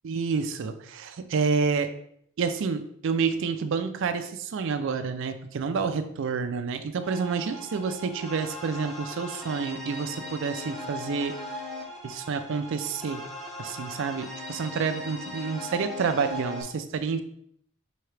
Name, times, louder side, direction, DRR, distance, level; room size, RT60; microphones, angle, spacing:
voice 1, 0.0-1.9 2.4-11.3 12.0-13.2 13.6-17.2, right 5 dB, 60° right, 9 dB, 0.4 m, -29 dB
sound 1, 7.0-16.6, left 1 dB, ahead, 0.8 m, -39 dB
5.6 x 2.8 x 3.2 m, 0.69 s
head